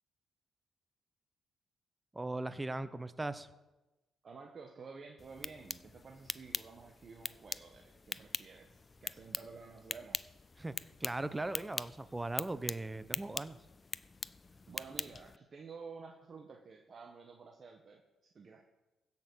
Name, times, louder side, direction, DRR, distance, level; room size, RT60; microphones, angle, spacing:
voice 1, 2.1-3.5 10.6-13.6, right 2 dB, 20° right, 14 dB, 0.8 m, -39 dB
voice 2, 4.2-10.3 14.5-18.6, right 4 dB, 50° right, 3 dB, 1.1 m, -52 dB
sound 1, 5.2-15.4, left 4 dB, 30° left, 0.4 m, -43 dB
16.0 x 5.9 x 6.2 m, 1.1 s
supercardioid pair, 70°, 0 cm